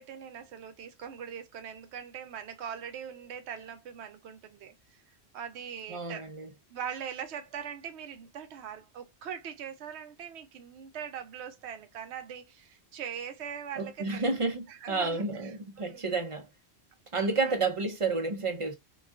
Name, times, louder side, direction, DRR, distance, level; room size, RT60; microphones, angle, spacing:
voice 1, 0.0-5.0 5.3-6.3 6.7-14.3 14.7-16.0 17.4-17.6, right 8 dB, 80° right, 0.9 m, -41 dB
voice 2, 5.9-6.5 13.8-16.5 17.1-18.7, right 3 dB, 40° right, 0.5 m, -30 dB
2.4 x 2.3 x 2.3 m
omnidirectional pair, 1.1 m